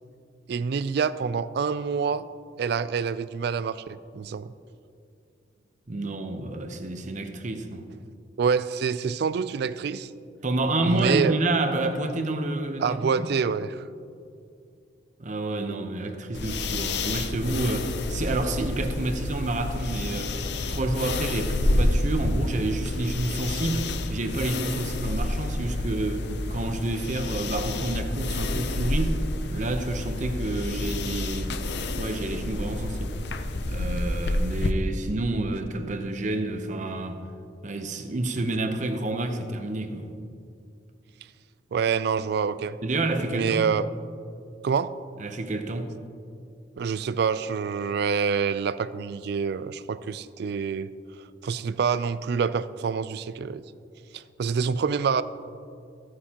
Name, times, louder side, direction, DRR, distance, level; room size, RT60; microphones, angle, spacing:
voice 1, 0.5-2.3 2.6-4.5 8.4-10.1 10.8-11.4 12.8-13.8 41.7-42.8 43.3-43.9 44.6-44.9 46.8-50.9 51.4-53.6 54.1-55.2, right 6 dB, 60° right, 0.3 m, -26 dB
voice 2, 5.9-7.9 10.4-13.3 15.2-20.4 20.7-29.2 29.5-31.6 32.0-33.2 33.7-37.2 37.6-40.1 42.8-43.6 45.2-46.0, right 2 dB, 45° right, 0.8 m, -29 dB
sound 1, 16.3-34.7, left 2 dB, 65° left, 0.6 m, -29 dB
15.0 x 9.6 x 2.9 m
head